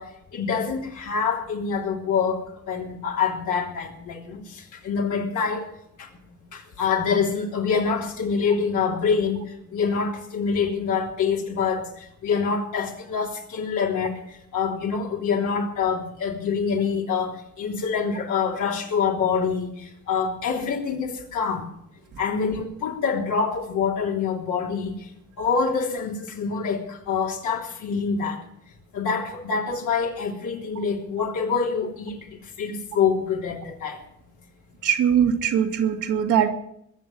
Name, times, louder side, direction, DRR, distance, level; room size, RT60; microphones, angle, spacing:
voice 1, 0.0-5.7 6.0-6.1 6.5-9.4 9.7-14.2 14.5-21.7 22.2-25.0 25.4-28.4 28.9-32.2 32.6-34.0, left 5 dB, 80° left, 3.4 m, -26 dB
voice 2, 34.8-36.5, right 8 dB, 80° right, 2.3 m, -21 dB
21.5 x 7.4 x 7.6 m
cardioid pair, 90°, 30 cm